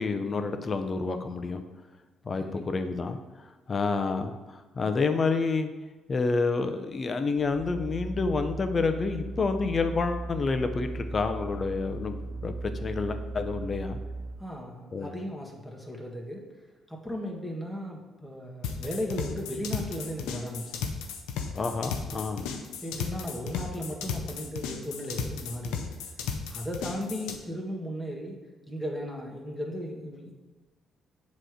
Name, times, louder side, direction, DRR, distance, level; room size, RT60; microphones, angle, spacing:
voice 1, 0.0-1.6 2.2-3.2 3.7-5.7 6.1-12.5 12.8-14.0 14.9-15.1 21.5-22.5, left 4 dB, 40° left, 7 dB, 0.6 m, -29 dB
voice 2, 2.4-2.8 14.4-16.4 16.9-20.9 21.8-22.3 22.8-25.9 26.5-28.4 28.7-30.3, equal, 5° left, -1 dB, 1.5 m, -36 dB
sound 1, 7.3-14.3, right 3 dB, 90° right, 0.7 m, -37 dB
sound 2, 18.6-27.4, left 6 dB, 90° left, 0.6 m, -35 dB
7.6 x 3.2 x 5.0 m, 1.3 s
supercardioid pair, 65°, 0 cm